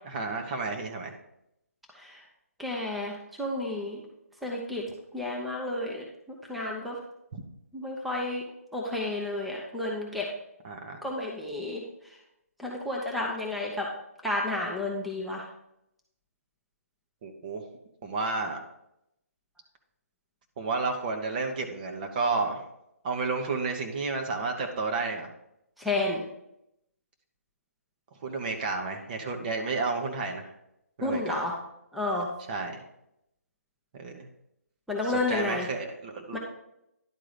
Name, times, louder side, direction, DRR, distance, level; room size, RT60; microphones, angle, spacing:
voice 1, 0.1-1.1 7.3-7.4 10.6-11.0 17.2-17.6 18.0-18.6 20.6-22.6 23.0-25.3 28.2-30.5 31.0-31.4 32.5-32.8 33.9-34.3 35.3-36.4, right 3 dB, 35° right, 4 dB, 1.1 m, -31 dB
voice 2, 1.9-2.2 2.6-4.0 4.4-4.8 5.1-7.0 7.7-8.4 8.7-10.3 11.0-11.8 12.6-13.9 14.2-15.4 25.8-26.2 31.0-31.6 31.9-32.3 34.9-35.7 36.3-36.4, left 2 dB, ahead, -2 dB, 0.8 m, -31 dB
11.0 x 3.8 x 5.0 m, 0.81 s
figure-of-eight pair, 145°, 8 cm